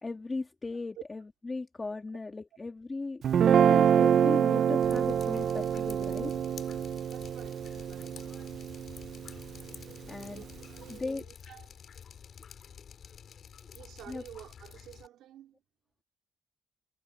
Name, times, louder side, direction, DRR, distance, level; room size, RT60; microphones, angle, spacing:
voice 1, 0.0-6.3 10.1-10.4 10.9-11.2 14.1-14.2, left 3 dB, 25° left, 1.6 m, -37 dB
Guitar, 3.2-9.6, right 8 dB, 60° right, 0.4 m, -26 dB
Drip, 4.8-15.1, left 7 dB, 55° left, 2.9 m, -49 dB
voice 2, 7.1-8.4 10.1-10.5 10.8-11.8 13.7-15.6, right 12 dB, 85° right, 3.2 m, -50 dB
cardioid pair, 90°, 0 cm